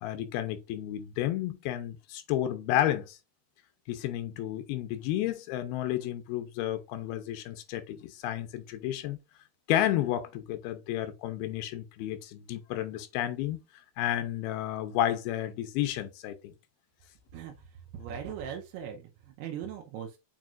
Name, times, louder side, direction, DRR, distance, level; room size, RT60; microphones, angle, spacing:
voice 1, 0.0-3.2 3.9-9.2 9.7-13.6 14.0-16.4, left 12 dB, 85° left, 2.7 m, -31 dB
voice 2, 17.9-20.2, right 8 dB, 85° right, 2.9 m, -39 dB
7.5 x 5.2 x 2.4 m
omnidirectional pair, 4.5 m